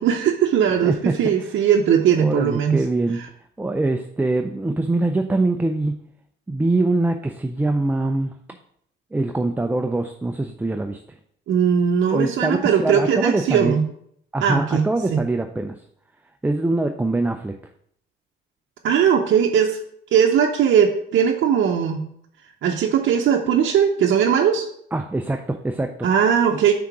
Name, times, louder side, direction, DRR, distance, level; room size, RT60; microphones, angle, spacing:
voice 1, 0.0-2.8 3.2-3.3 11.5-13.8 14.4-14.9 15.1-15.2 18.8-19.8 20.1-22.0 22.6-24.7 26.0-26.7, right 8 dB, 70° right, 1 dB, 0.7 m, -19 dB
voice 2, 0.8-1.1 2.1-3.2 3.6-6.0 6.5-8.3 9.1-11.0 12.1-13.7 14.3-15.7 16.4-17.5 24.9-25.9, right 2 dB, 10° right, 6 dB, 0.4 m, -23 dB
5.7 x 3.8 x 5.9 m, 0.68 s
cardioid pair, 90°, 20 cm